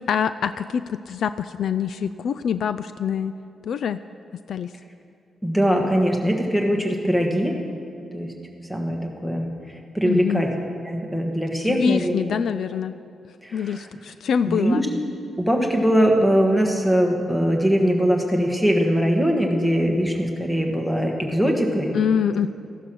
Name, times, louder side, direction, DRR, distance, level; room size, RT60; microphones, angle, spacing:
voice 1, 0.1-3.3 3.6-4.0 4.5-4.7 10.0-10.4 11.7-12.9 13.5-14.8 21.9-22.5, left 7 dB, 65° left, 13 dB, 0.3 m, -24 dB
voice 2, 5.4-7.5 8.1-8.3 8.7-9.5 9.9-10.5 10.8-12.1 13.4-13.9 14.5-14.8 15.4-22.0, equal, 5° left, 2 dB, 1.5 m, -21 dB
14.5 x 11.0 x 6.3 m, 2.6 s
wide cardioid pair, 135°, 0 cm